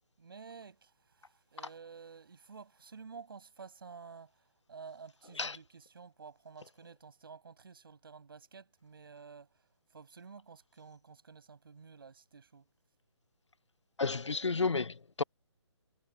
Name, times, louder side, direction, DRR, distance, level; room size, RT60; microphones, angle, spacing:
voice 1, 0.2-9.6 9.9-12.7, right 5 dB, 50° right, 6.2 m, -52 dB
voice 2, 14.0-15.2, left 4 dB, 70° left, 0.6 m, -31 dB
figure-of-eight pair, 145°, 15 cm